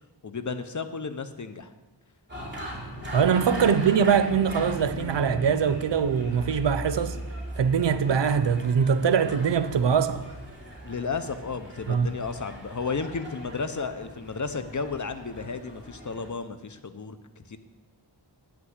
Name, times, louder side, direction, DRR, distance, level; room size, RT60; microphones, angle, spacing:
voice 1, 0.2-1.7 3.6-3.7 10.8-17.6, left 4 dB, 45° left, 0.8 m, -33 dB
sound 1, 2.3-16.3, equal, 25° right, 3.7 m, -39 dB
voice 2, 3.1-7.2 7.6-10.2 11.9-12.1, right 7 dB, 90° right, 0.7 m, -23 dB
8.8 x 6.0 x 8.0 m
wide cardioid pair, 60°, 41 cm